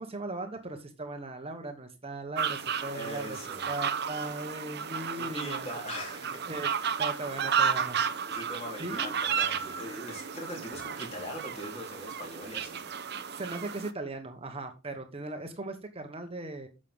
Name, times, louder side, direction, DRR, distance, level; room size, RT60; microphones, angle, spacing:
voice 1, 0.0-3.4 3.7-5.7 6.5-6.7 7.0-8.0 8.8-9.1 13.3-16.7, right 2 dB, 30° right, 1.3 m, -38 dB
sound 1, 2.4-13.9, right 7 dB, 55° right, 0.8 m, -33 dB
voice 2, 2.9-3.7 5.2-6.4 8.3-12.8, equal, 35° left, 3.9 m, -41 dB
9.3 x 6.5 x 3.6 m
head